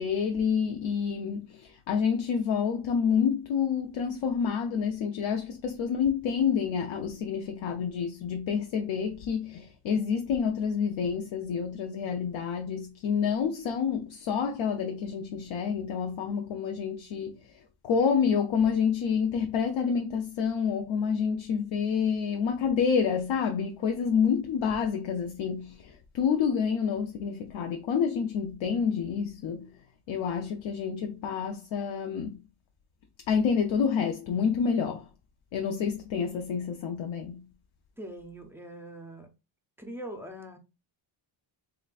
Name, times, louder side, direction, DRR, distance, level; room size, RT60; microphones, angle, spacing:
voice 1, 0.0-29.7 30.1-32.4 33.3-35.1 35.5-37.4, left 6 dB, 65° left, 0.6 m, -28 dB
voice 2, 38.0-39.3 39.8-40.6, right 1 dB, 5° right, 0.4 m, -42 dB
3.8 x 3.3 x 2.3 m
wide cardioid pair, 145°, 50 cm